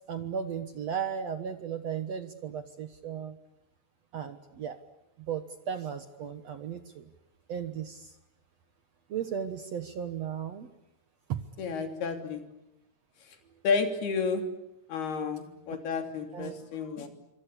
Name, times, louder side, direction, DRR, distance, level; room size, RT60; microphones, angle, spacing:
voice 1, 0.1-3.4 4.1-4.8 5.3-7.1 7.5-8.1 9.1-10.7 11.3-11.4 16.3-16.5, right 8 dB, 60° right, 9 dB, 1.9 m, -35 dB
voice 2, 11.6-12.4 13.6-14.4 14.9-17.1, left 5 dB, 80° left, 6 dB, 5.0 m, -31 dB
26.5 x 25.0 x 8.5 m, 0.85 s
omnidirectional pair, 4.5 m